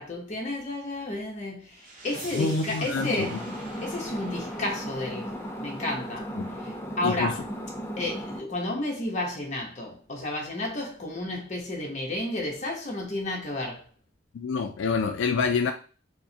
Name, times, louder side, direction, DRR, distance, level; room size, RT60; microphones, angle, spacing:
voice 1, 0.0-3.4 3.8-5.3 5.6-6.3 6.6-7.4 8.0-13.8, left 2 dB, 40° left, 0.9 m, -32 dB
sound 1, 1.7-6.7, right 2 dB, 45° right, 0.7 m, -45 dB
voice 2, 2.3-3.4 6.4-6.5 7.0-7.3 14.3-15.7, left 5 dB, 80° left, 0.3 m, -27 dB
sound 2, 2.9-8.4, equal, 15° left, 0.4 m, -36 dB
4.6 x 2.1 x 2.7 m
head